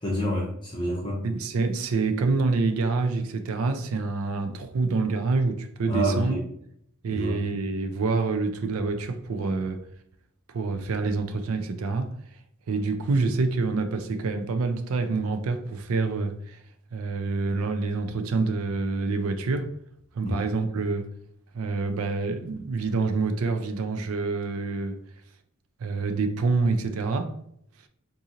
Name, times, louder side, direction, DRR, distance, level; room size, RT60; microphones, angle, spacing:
voice 1, 0.0-1.2 5.9-6.4 7.1-7.4 20.2-20.4, equal, 20° left, 0.7 m, -27 dB
voice 2, 1.2-6.4 7.0-9.8 10.5-12.1 12.7-16.6 16.9-19.7 20.1-21.1 21.5-25.0 25.8-27.4, right 3 dB, 80° right, 0.4 m, -27 dB
3.7 x 2.6 x 2.8 m
head